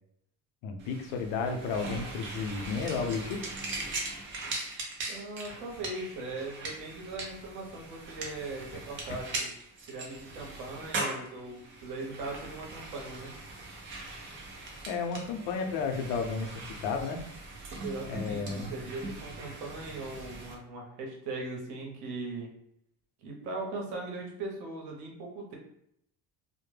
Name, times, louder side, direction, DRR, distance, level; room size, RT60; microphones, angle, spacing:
voice 1, 0.6-3.4 14.9-16.5 16.8-17.2 18.1-18.7, left 5 dB, 80° left, 5 dB, 0.6 m, -32 dB
sound 1, 0.8-20.5, right 2 dB, 30° right, 0.5 m, -40 dB
voice 2, 5.1-9.5 9.9-13.3 17.8-22.5 23.2-25.6, right 2 dB, 80° right, 0 dB, 0.9 m, -39 dB
2.1 x 2.1 x 3.1 m, 0.74 s
cardioid pair, 155°, 39 cm